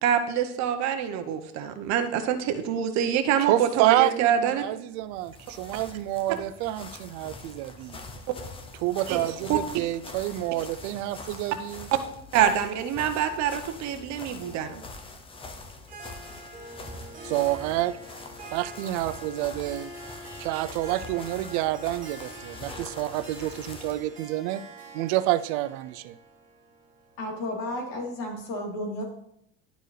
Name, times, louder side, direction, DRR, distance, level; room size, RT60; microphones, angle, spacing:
voice 1, 0.0-4.7 9.1-9.2 9.5-9.6 11.9-12.0 12.3-14.8, right 9 dB, 55° right, 8 dB, 0.8 m, -25 dB
voice 2, 3.4-8.0 8.8-11.9 17.2-18.0 18.5-19.9 20.4-24.6 24.9-26.2, right 15 dB, 85° right, 16 dB, 0.5 m, -28 dB
sound 1, 5.0-24.1, left 3 dB, 15° left, 0.6 m, -44 dB
Harp, 15.8-27.7, right 1 dB, 25° right, 1.9 m, -45 dB
voice 3, 27.2-29.0, left 1 dB, 70° left, -1 dB, 2.5 m, -32 dB
11.5 x 4.5 x 3.2 m, 0.77 s
cardioid pair, 160°, 34 cm